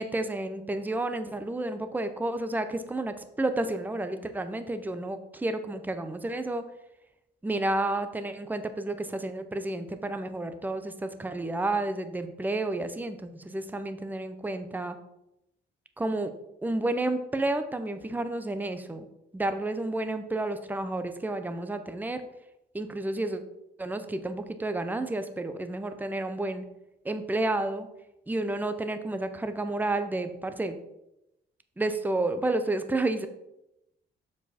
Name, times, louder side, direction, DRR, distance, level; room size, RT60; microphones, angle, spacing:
voice 1, 0.0-6.6 7.4-15.0 16.0-16.3 16.6-19.1 19.3-22.2 22.7-23.4 23.8-26.7 27.0-27.9 28.3-30.7 31.8-33.3, right 2 dB, 10° right, 9 dB, 0.6 m, -31 dB
7.1 x 4.6 x 4.2 m, 0.87 s
cardioid pair, 90°, 20 cm